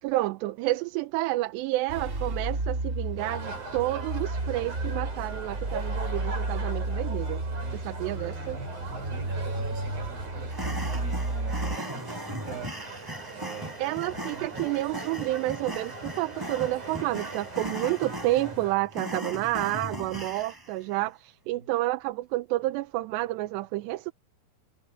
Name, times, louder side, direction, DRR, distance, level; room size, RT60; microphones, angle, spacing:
voice 1, 0.0-7.4 7.8-8.6 13.8-24.1, right 17 dB, 85° right, 3.0 m, -30 dB
sound 1, 1.9-11.8, right 2 dB, 20° right, 2.7 m, -32 dB
sound 2, 3.2-18.7, right 3 dB, 45° right, 9.3 m, -41 dB
voice 2, 7.6-12.8 13.3-13.8 14.3-14.8 21.0-21.1 21.6-21.7, right 4 dB, 65° right, 8.8 m, -44 dB
sound 3, 10.5-20.7, equal, 5° right, 5.7 m, -38 dB
omnidirectional pair, 4.9 m